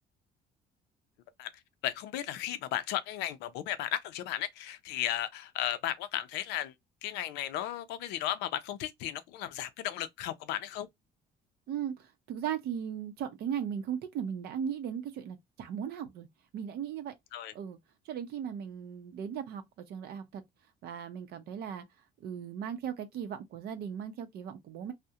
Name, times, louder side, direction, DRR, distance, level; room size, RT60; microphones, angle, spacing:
voice 1, 1.8-6.7 7.0-10.9 17.3-17.5, left 12 dB, 90° left, 0.4 m, -35 dB
voice 2, 11.7-16.3 16.5-17.1 17.5-17.8 18.0-20.4 20.8-21.8 22.2-24.9, right 8 dB, 70° right, 0.5 m, -37 dB
2.3 x 2.1 x 2.7 m
cardioid pair, 110°, 17 cm